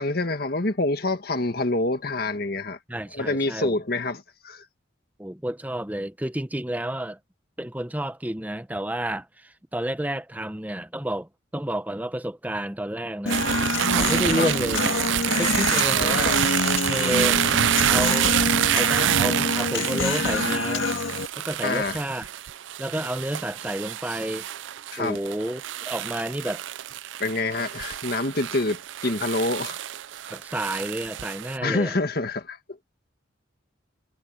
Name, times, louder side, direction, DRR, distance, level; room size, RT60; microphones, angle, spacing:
voice 1, 0.0-2.8 3.1-4.7 14.4-14.5 15.9-16.5 21.6-22.0 24.9-25.2 27.2-29.8 31.6-32.8, left 2 dB, 50° left, 1.7 m, -27 dB
voice 2, 2.9-3.8 5.2-7.2 7.6-13.4 13.9-14.8 15.4-16.3 16.9-17.4 17.9-18.3 18.7-20.9 21.4-22.3 22.8-24.5 25.0-26.6 30.3-32.0, right 1 dB, 10° right, 0.7 m, -30 dB
Human voice, 13.3-21.3, left 3 dB, 85° left, 2.0 m, -26 dB
sound 1, 13.3-31.6, right 11 dB, 70° right, 0.4 m, -27 dB
head